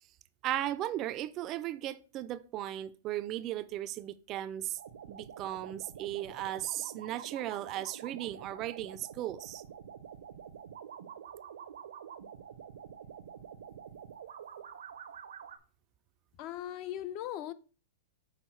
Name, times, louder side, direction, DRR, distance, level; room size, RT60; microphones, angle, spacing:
voice 1, 0.4-4.8 5.1-9.6, right 13 dB, 30° right, 0.3 m, -36 dB
sound 1, 4.8-15.6, right 8 dB, 80° right, 0.7 m, -47 dB
voice 2, 16.4-17.5, left 12 dB, 40° left, 0.4 m, -38 dB
6.3 x 3.6 x 4.5 m
hypercardioid pair, 145°, 0 cm